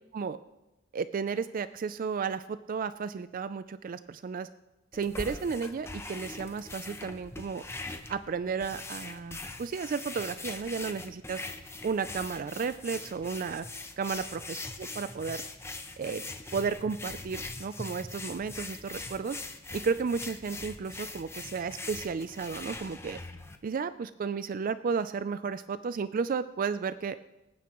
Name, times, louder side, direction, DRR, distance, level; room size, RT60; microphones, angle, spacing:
voice 1, 0.9-4.5 4.9-7.6 8.1-11.4 11.8-13.7 14.0-15.4 16.0-16.2 16.5-19.4 19.7-23.2 23.6-27.2, right 5 dB, 40° right, 13 dB, 0.3 m, -33 dB
sound 1, 4.9-23.6, left 3 dB, 10° left, 0.7 m, -42 dB
25.5 x 9.3 x 3.0 m, 0.98 s
head